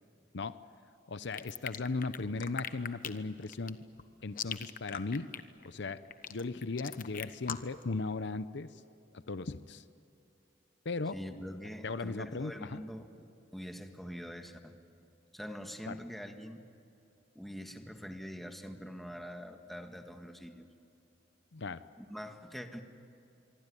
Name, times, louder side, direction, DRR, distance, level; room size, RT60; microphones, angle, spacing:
voice 1, 1.1-3.8 4.2-5.3 5.6-6.0 6.3-8.8 9.3-9.8 10.8-11.2 11.8-12.8 15.9-16.0 21.5-21.8, left 3 dB, 65° left, 13 dB, 0.7 m, -37 dB
sound 1, 1.3-7.8, left 8 dB, 45° left, 1.1 m, -40 dB
voice 2, 11.1-14.8 15.3-16.6 17.4-20.7 22.0-22.8, equal, ahead, 5 dB, 1.7 m, -44 dB
25.0 x 24.5 x 9.9 m, 2.7 s
head